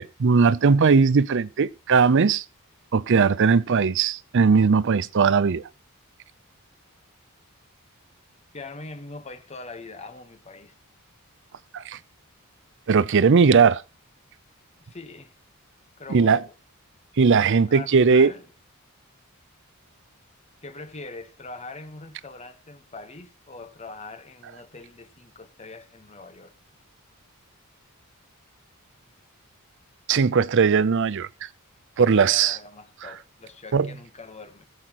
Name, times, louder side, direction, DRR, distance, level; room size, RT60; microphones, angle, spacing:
voice 1, 0.0-2.4 2.9-5.6 11.7-12.0 12.9-13.8 16.1-16.4 17.2-18.3 30.1-31.3 32.0-32.6 33.7-33.9, right 5 dB, 55° right, 0.5 m, -19 dB
voice 2, 8.5-10.7 14.8-15.4 16.0-16.5 17.7-18.5 20.6-26.5 32.0-34.6, left 3 dB, 30° left, 1.0 m, -42 dB
21.5 x 8.0 x 3.0 m
head